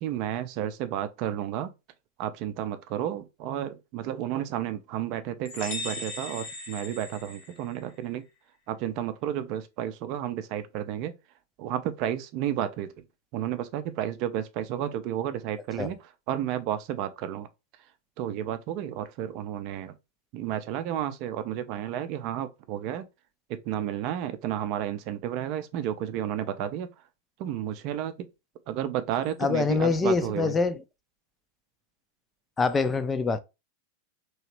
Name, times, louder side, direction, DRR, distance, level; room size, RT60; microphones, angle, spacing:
voice 1, 0.0-1.7 2.2-8.2 8.7-11.1 11.6-12.9 13.3-16.0 16.3-17.5 18.2-19.9 20.3-23.0 23.5-26.9 27.4-28.1 28.7-30.5, right 11 dB, 45° right, 0.5 m, -32 dB
sound 1, 5.5-8.0, left 3 dB, 45° left, 0.9 m, -38 dB
voice 2, 29.4-30.8 32.6-33.4, left 4 dB, 20° left, 0.5 m, -25 dB
3.1 x 2.8 x 3.0 m
figure-of-eight pair, 90°, 0 cm